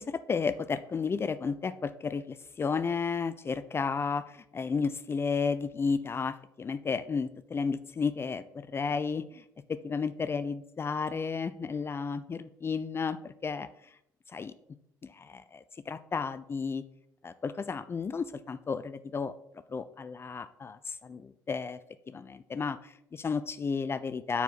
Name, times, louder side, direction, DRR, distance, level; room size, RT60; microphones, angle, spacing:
voice 1, 0.0-9.4 9.7-13.7 14.3-14.5 15.0-16.8 17.2-19.3 19.7-21.8 22.1-24.4, left 5 dB, 30° left, 14 dB, 0.4 m, -33 dB
9.3 x 4.6 x 4.1 m, 0.76 s
hypercardioid pair, 60°, 8 cm